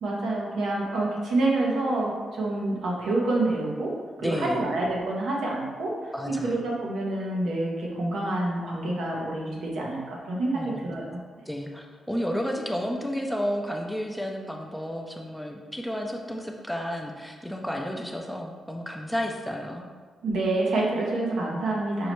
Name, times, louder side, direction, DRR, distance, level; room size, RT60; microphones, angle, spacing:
voice 1, 0.0-11.2 20.2-22.1, right 2 dB, 75° right, -3 dB, 0.8 m, -27 dB
voice 2, 4.2-4.6 6.1-6.6 10.5-11.0 11.5-19.9, equal, 5° left, 1 dB, 0.5 m, -32 dB
5.5 x 2.0 x 3.0 m, 1.5 s
supercardioid pair, 60°, 0 cm